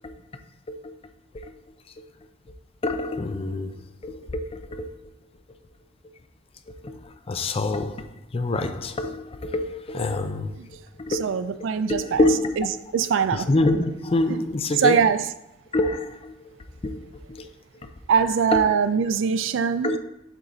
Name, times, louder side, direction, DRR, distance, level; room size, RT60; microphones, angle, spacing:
voice 1, 2.8-3.7 4.0-4.9 6.8-6.9 7.3-8.1 8.3-10.5 11.0-11.3 11.9-12.7 13.3-15.1 15.7-16.3 16.8-17.0 17.3-17.5 18.5-18.8 19.8-20.0, left 2 dB, 30° left, 0.4 m, -26 dB
voice 2, 11.1-12.2 12.6-12.7 12.9-13.5 14.3-14.4 14.8-15.2 18.1-19.9, right 6 dB, 70° right, 0.4 m, -22 dB
7.3 x 3.9 x 3.9 m
head